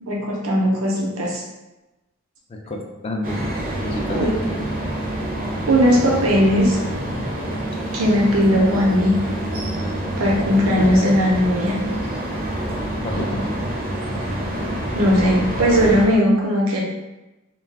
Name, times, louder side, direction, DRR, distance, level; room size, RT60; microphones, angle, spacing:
voice 1, 0.0-1.4 4.2-4.4 5.7-6.8 7.9-9.2 10.2-11.8 14.9-16.8, equal, 85° right, -2 dB, 0.7 m, -18 dB
voice 2, 2.5-3.4 3.8-4.5 13.0-13.6, left 1 dB, 25° left, 1 dB, 0.4 m, -29 dB
sound 1, 3.2-16.1, right 1 dB, 45° right, 0.5 m, -27 dB
2.3 x 2.2 x 3.3 m, 1.0 s
head